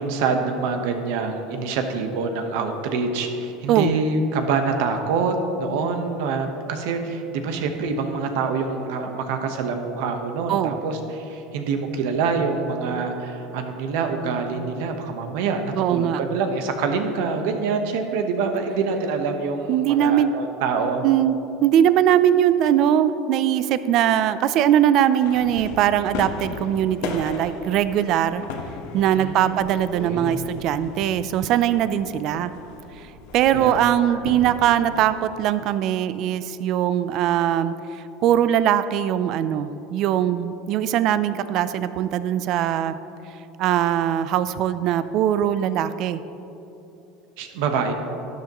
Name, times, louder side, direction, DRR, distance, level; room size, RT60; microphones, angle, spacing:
voice 1, 0.0-21.0 29.1-29.6 29.9-30.4 33.5-33.8 34.1-34.2 47.4-47.9, right 4 dB, 75° right, 5 dB, 1.1 m, -26 dB
voice 2, 15.7-16.2 19.7-20.3 21.0-28.4 28.9-32.5 33.3-43.0 43.6-46.2, right 10 dB, 50° right, 13 dB, 0.4 m, -21 dB
sound 1, 25.2-35.2, left 4 dB, 75° left, 1.2 m, -37 dB
12.5 x 11.0 x 3.0 m, 2.9 s
supercardioid pair, 130°, 0 cm